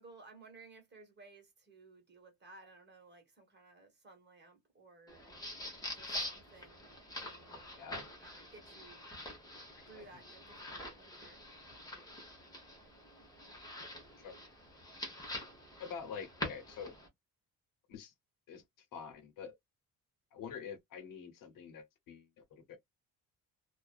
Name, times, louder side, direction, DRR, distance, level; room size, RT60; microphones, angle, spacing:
voice 1, 0.0-5.3 5.9-6.9 7.1-7.7 8.2-9.1 9.9-11.4, right 3 dB, 30° right, 1.4 m, -58 dB
sound 1, 5.1-17.1, left 1 dB, 10° left, 0.9 m, -46 dB
voice 2, 7.8-8.1 9.8-10.2 14.2-14.3 15.8-17.0 17.9-18.1 18.5-19.5 20.3-22.8, left 6 dB, 65° left, 0.9 m, -47 dB
2.4 x 2.3 x 2.3 m
cardioid pair, 135°, 36 cm